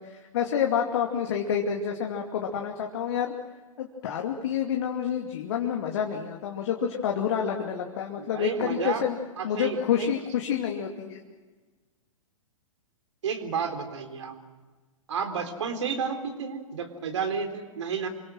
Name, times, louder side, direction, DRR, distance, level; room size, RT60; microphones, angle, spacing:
voice 1, 0.0-3.3 3.8-9.2 9.4-11.2, left 8 dB, 50° left, 2 dB, 2.6 m, -28 dB
voice 2, 8.2-9.0 9.4-10.1 13.2-14.4 15.1-18.1, right 6 dB, 60° right, 7 dB, 3.9 m, -31 dB
28.5 x 24.0 x 6.3 m, 1.3 s
figure-of-eight pair, 110°, 18 cm